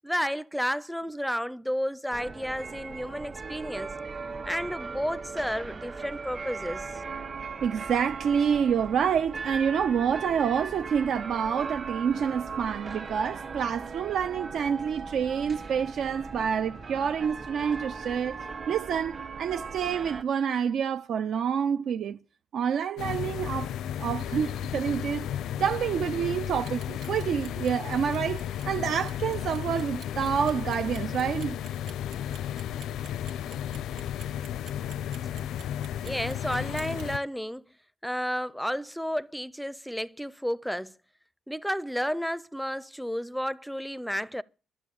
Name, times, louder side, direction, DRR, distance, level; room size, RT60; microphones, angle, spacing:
voice 1, 0.0-4.0 4.4-7.0 36.0-37.6 38.0-40.9 41.5-44.4, equal, ahead, 0.6 m, -32 dB
sound 1, 2.1-20.2, right 4 dB, 35° right, 1.6 m, -38 dB
voice 2, 7.6-22.2 22.5-23.7 24.0-25.3 25.6-31.6, right 7 dB, 65° right, 0.6 m, -28 dB
sound 2, 23.0-37.2, left 10 dB, 80° left, 0.5 m, -34 dB
Clock, 26.6-37.1, right 9 dB, 85° right, 1.9 m, -50 dB
12.0 x 7.1 x 8.6 m
cardioid pair, 95°, 0 cm